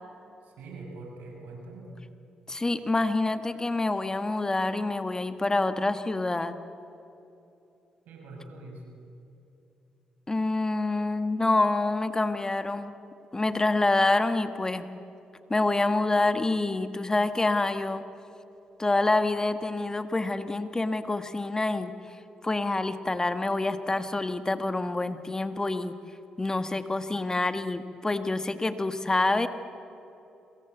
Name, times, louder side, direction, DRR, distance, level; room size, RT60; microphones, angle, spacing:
voice 1, 0.4-2.0 8.0-8.9, right 2 dB, 80° right, 1 dB, 6.2 m, -43 dB
voice 2, 2.5-6.5 10.3-12.9 13.3-14.9 15.5-18.0 18.8-21.9 22.4-26.0 26.4-29.5, left 2 dB, 25° left, 9 dB, 1.6 m, -27 dB
27.0 x 23.5 x 8.2 m, 2.9 s
supercardioid pair, 60°, 3 cm